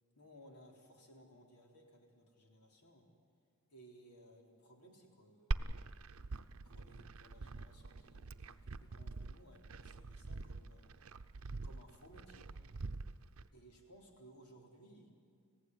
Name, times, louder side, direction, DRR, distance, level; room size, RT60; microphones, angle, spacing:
voice 1, 0.2-3.1 3.7-5.6 6.6-10.9 11.6-12.5 13.5-15.1, equal, 90° left, 1 dB, 3.8 m, -61 dB
Glass, 5.5-13.5, right 3 dB, 70° right, 0.7 m, -44 dB
30.0 x 16.0 x 9.5 m, 2.2 s
head